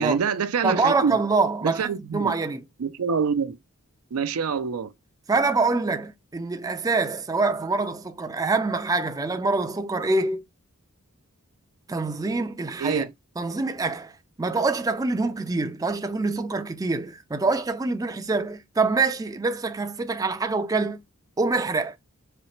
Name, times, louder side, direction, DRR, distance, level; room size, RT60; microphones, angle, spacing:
voice 1, 0.0-1.2 1.6-2.3 2.8-3.6 4.1-4.9 12.8-13.1, right 6 dB, 75° right, 0.5 m, -26 dB
voice 2, 0.6-2.6 5.3-10.4 11.9-13.1 13.4-14.1 14.4-21.0 21.4-22.0, right 3 dB, 15° right, 0.4 m, -25 dB
4.2 x 3.2 x 3.0 m
head